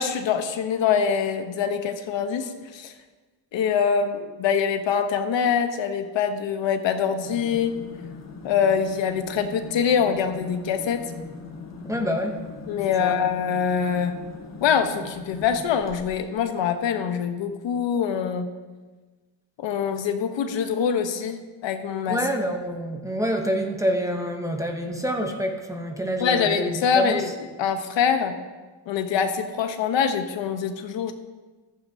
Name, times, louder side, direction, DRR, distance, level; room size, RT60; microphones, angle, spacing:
voice 1, 0.0-2.9 3.5-7.8 8.4-11.0 12.7-14.1 14.6-18.5 19.6-22.2 26.2-27.3 27.6-28.4 28.9-31.1, left 7 dB, 70° left, 7 dB, 1.1 m, -24 dB
sound 1, 7.1-16.3, left 4 dB, 35° left, 1.7 m, -40 dB
voice 2, 11.8-12.4 13.0-13.2 22.1-27.2, equal, 5° right, 3 dB, 0.9 m, -27 dB
14.5 x 13.0 x 2.8 m, 1.3 s
cardioid pair, 145°, 46 cm